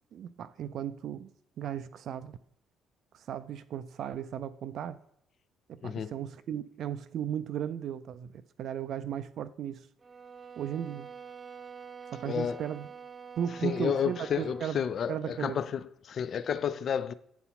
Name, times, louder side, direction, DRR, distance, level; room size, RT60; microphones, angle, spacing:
voice 1, 0.1-1.3 1.6-2.4 3.1-5.0 5.7-9.9 10.6-11.1 12.1-12.9 13.4-14.8 15.1-15.6, right 9 dB, 60° right, 0.3 m, -36 dB
voice 2, 5.8-6.2 12.2-12.6 13.6-17.1, left 8 dB, 55° left, 0.4 m, -31 dB
sound 1, 10.0-14.7, right 6 dB, 30° right, 0.7 m, -46 dB
8.9 x 4.1 x 5.6 m
hypercardioid pair, 50°, 0 cm